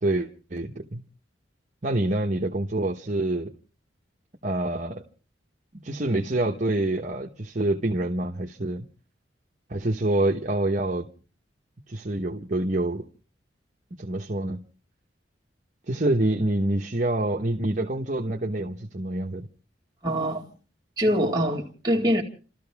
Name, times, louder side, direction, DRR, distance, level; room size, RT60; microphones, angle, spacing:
voice 1, 0.0-1.0 1.8-3.5 4.4-5.0 5.8-8.9 9.7-11.1 11.9-13.0 14.0-14.6 15.9-19.5, right 1 dB, 45° right, 1.1 m, -26 dB
voice 2, 20.0-20.5 21.0-22.2, equal, 25° right, 2.1 m, -24 dB
30.0 x 13.5 x 3.5 m
head